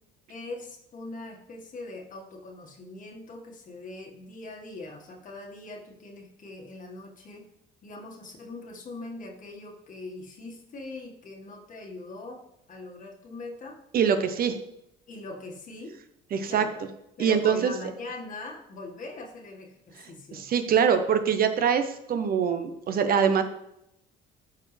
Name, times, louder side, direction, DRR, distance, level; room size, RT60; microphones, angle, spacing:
voice 1, 0.3-7.5 7.8-12.4 12.7-13.8 15.1-16.0 16.4-16.8 17.2-20.4, left 2 dB, 45° left, 1 dB, 1.7 m, -41 dB
voice 2, 13.9-14.6 16.3-16.7 17.2-17.7 20.0-23.4, right 7 dB, 50° right, 8 dB, 0.8 m, -24 dB
12.5 x 4.4 x 3.3 m, 0.81 s
cardioid pair, 95°, 20 cm